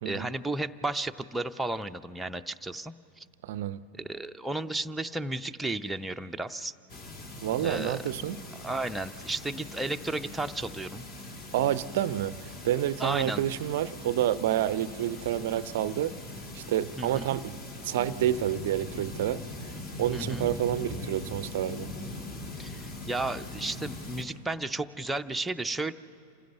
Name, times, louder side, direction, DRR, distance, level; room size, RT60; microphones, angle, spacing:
voice 1, 0.0-3.2 4.0-6.7 7.6-8.0 8.6-11.0 13.0-13.4 17.0-17.4 20.1-20.5 22.6-25.9, right 2 dB, 5° right, 0.5 m, -33 dB
voice 2, 3.4-3.8 7.4-8.4 11.5-16.2 16.5-17.6 17.8-19.7 20.0-21.9, right 12 dB, 55° right, 0.4 m, -29 dB
sound 1, 6.9-24.2, left 2 dB, 40° left, 2.6 m, -41 dB
27.5 x 15.5 x 6.8 m
figure-of-eight pair, 90°, 0 cm